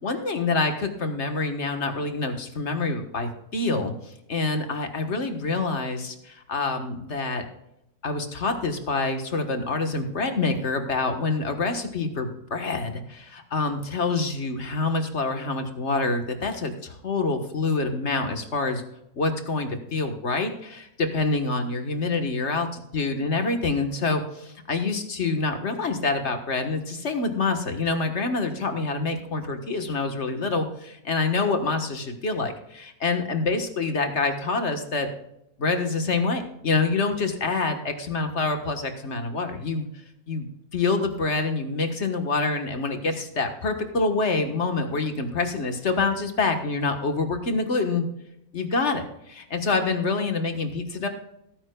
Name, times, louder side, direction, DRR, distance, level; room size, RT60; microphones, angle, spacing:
voice 1, 0.0-7.4 8.0-18.8 19.1-35.1 35.6-39.9 40.3-40.5 40.7-48.0 48.5-51.1, left 3 dB, 40° left, 6 dB, 1.6 m, -26 dB
18.0 x 9.8 x 2.3 m, 0.80 s
omnidirectional pair, 1.9 m